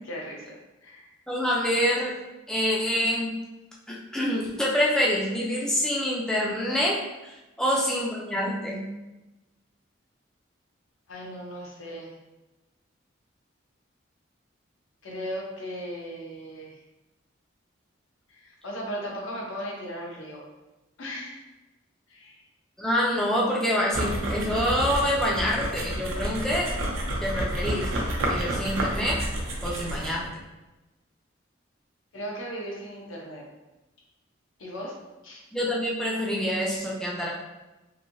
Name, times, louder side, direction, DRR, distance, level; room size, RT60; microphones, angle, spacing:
voice 1, 0.0-0.6 0.8-1.1 7.7-7.9 11.1-12.1 15.0-16.8 18.3-20.5 21.0-21.4 22.1-22.4 32.1-33.5 34.6-35.4, equal, 85° left, -2 dB, 0.8 m, -37 dB
voice 2, 1.3-2.2 2.5-3.3 3.9-8.8 22.8-26.7 27.2-27.9 28.3-29.2 29.6-30.3 35.5-37.3, equal, 5° left, -4 dB, 0.4 m, -26 dB
sound 1, 23.9-30.3, right 1 dB, 85° right, 0.6 m, -30 dB
3.0 x 2.6 x 2.6 m, 1.0 s
head